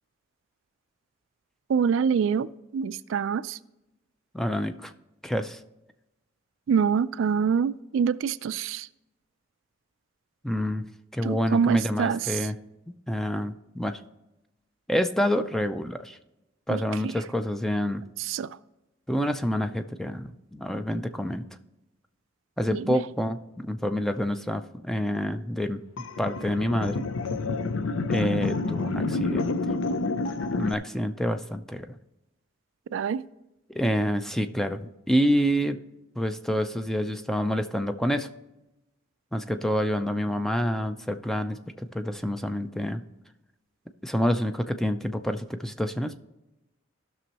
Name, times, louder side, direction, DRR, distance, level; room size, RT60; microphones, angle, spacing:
voice 1, 1.7-3.6 6.7-8.9 11.2-12.4 16.7-17.1 18.2-18.6 22.7-23.0 32.9-33.2, right 6 dB, 70° right, 0.3 m, -26 dB
voice 2, 4.3-4.9 5.2-5.6 10.4-10.9 11.1-12.5 13.1-14.0 14.9-16.2 16.7-18.0 19.1-21.4 22.6-25.8 26.2-27.0 28.1-29.5 30.6-32.0 33.7-35.8 36.2-38.3 39.3-41.6 41.9-43.0 44.0-46.2, equal, ahead, 0.4 m, -27 dB
sound 1, 26.0-30.7, left 3 dB, 75° left, 0.5 m, -28 dB
16.0 x 6.2 x 3.0 m
head